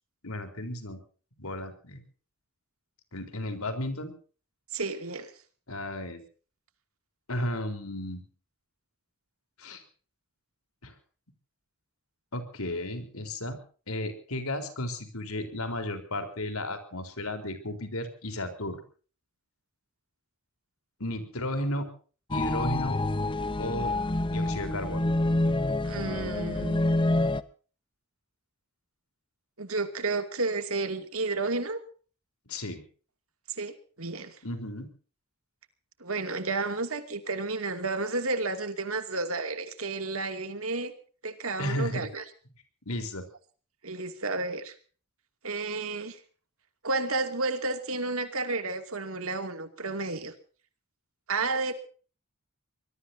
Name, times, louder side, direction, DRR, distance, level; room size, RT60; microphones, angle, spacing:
voice 1, 0.2-1.0 1.4-2.0 3.1-4.1 5.7-6.2 7.3-8.2 9.6-9.8 10.8-10.9 12.3-13.6 13.9-18.8 21.0-21.9 22.3-23.0 23.6-24.0 24.3-25.0 32.5-32.8 34.4-34.9 41.6-42.1 42.9-43.3, left 1 dB, 75° left, 7 dB, 4.1 m, -34 dB
voice 2, 4.7-5.3 25.8-26.8 29.6-31.8 33.5-34.4 36.0-40.9 41.2-42.2 43.8-44.7 45.4-46.2 46.8-50.3 51.3-51.7, right 3 dB, 70° right, 8 dB, 2.6 m, -31 dB
sound 1, 22.3-27.4, left 2 dB, 20° left, 0.8 m, -27 dB
24.5 x 21.0 x 2.8 m, 0.40 s
head